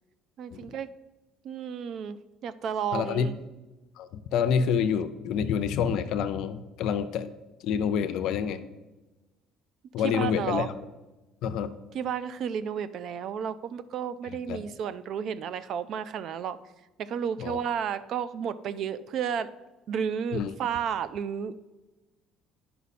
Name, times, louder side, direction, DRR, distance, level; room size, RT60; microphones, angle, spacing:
voice 1, 0.4-0.9 1.4-3.4 10.0-10.7 11.9-16.6 17.0-19.5 19.9-21.5, right 8 dB, 60° right, 15 dB, 0.4 m, -32 dB
voice 2, 2.9-3.3 4.0-7.3 7.6-8.6 9.9-10.7 11.4-11.7 14.5-14.6 17.4-17.6 20.3-20.5, left 7 dB, 70° left, 10 dB, 0.5 m, -27 dB
9.5 x 5.6 x 4.2 m, 1.1 s
cardioid pair, 100°, 0 cm